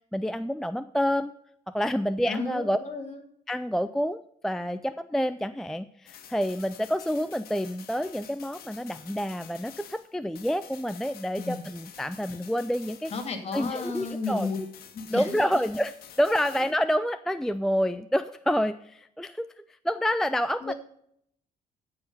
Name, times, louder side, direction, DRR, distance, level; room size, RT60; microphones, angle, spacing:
voice 1, 0.1-1.3 1.7-2.8 3.5-4.2 4.4-13.1 13.5-14.5 15.1-15.9 16.2-19.5 19.8-20.7, equal, 5° left, 11 dB, 0.3 m, -28 dB
voice 2, 2.3-3.2 11.4-11.6 13.1-14.6 14.9-15.4 16.5-16.6 20.6-20.7, left 3 dB, 40° left, 6 dB, 2.3 m, -33 dB
sound 1, 6.1-10.1 10.3-16.7, left 9 dB, 70° left, 1.4 m, -49 dB
14.0 x 4.8 x 5.4 m, 0.72 s
cardioid pair, 110°, 16 cm